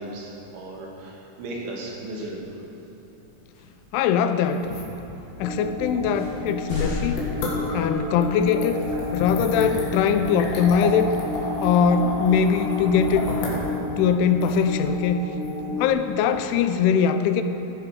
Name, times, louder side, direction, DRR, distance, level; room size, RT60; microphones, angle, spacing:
voice 1, 0.0-2.6, right 1 dB, 75° right, -2 dB, 4.4 m, -36 dB
sound 1, 2.2-2.5 3.5-3.9 4.6-4.7 5.5-5.6 6.2-8.1, left 3 dB, 30° left, 4.3 m, -33 dB
voice 2, 3.9-4.7 5.4-7.2 7.7-8.8 9.1-11.1 11.6-13.3 14.0-15.3 15.8-17.4, left 7 dB, 85° left, 9 dB, 3.1 m, -21 dB
sound 2, 4.5-16.4, left 2 dB, 65° left, 4.2 m, -33 dB
sound 3, 5.4-15.9, left 3 dB, 30° right, 1.4 m, -31 dB
15.0 x 15.0 x 4.9 m, 3.0 s
omnidirectional pair, 5.5 m